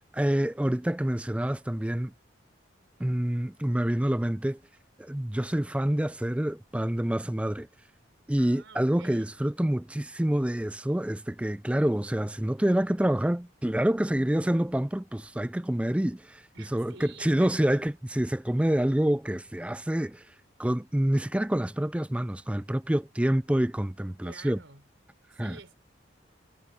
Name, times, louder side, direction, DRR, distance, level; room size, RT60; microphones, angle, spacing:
voice 1, 0.1-2.1 3.0-4.6 5.0-7.7 8.3-20.2 20.6-24.6 25.4-25.6, right 1 dB, 5° right, 0.4 m, -27 dB
voice 2, 8.4-9.3 16.5-17.9 24.2-24.8 25.3-25.7, right 4 dB, 75° right, 4.3 m, -50 dB
head